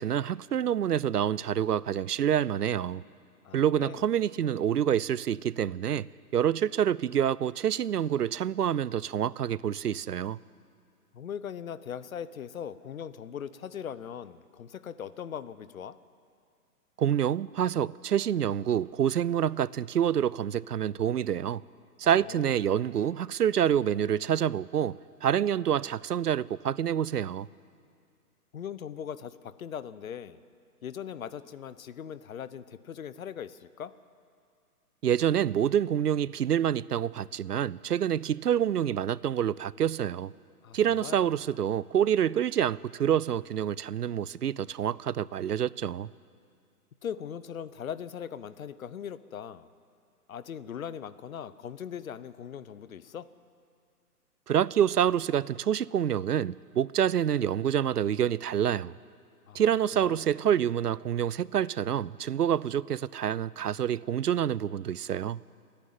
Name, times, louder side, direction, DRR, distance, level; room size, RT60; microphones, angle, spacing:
voice 1, 0.0-3.0 3.5-10.4 17.0-21.6 22.0-27.5 35.0-40.3 40.7-46.1 54.5-58.9 59.5-65.4, right 9 dB, 80° right, 0.6 m, -27 dB
voice 2, 3.4-4.0 11.1-16.0 22.0-22.6 28.5-30.4 30.8-33.9 40.6-41.3 47.0-49.7 50.3-53.3 59.5-59.6 59.9-60.3, left 8 dB, 60° left, 1.0 m, -40 dB
28.5 x 10.0 x 9.4 m
figure-of-eight pair, 130°, 46 cm